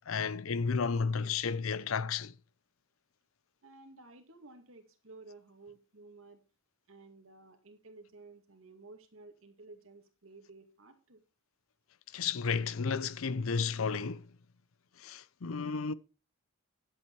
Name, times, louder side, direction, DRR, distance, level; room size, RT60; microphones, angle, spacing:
voice 1, 0.1-2.3 12.1-14.2 15.0-15.9, left 5 dB, 75° left, 0.6 m, -32 dB
voice 2, 3.6-6.4 6.9-11.2, right 3 dB, 70° right, 2.2 m, -54 dB
11.0 x 8.2 x 4.6 m
head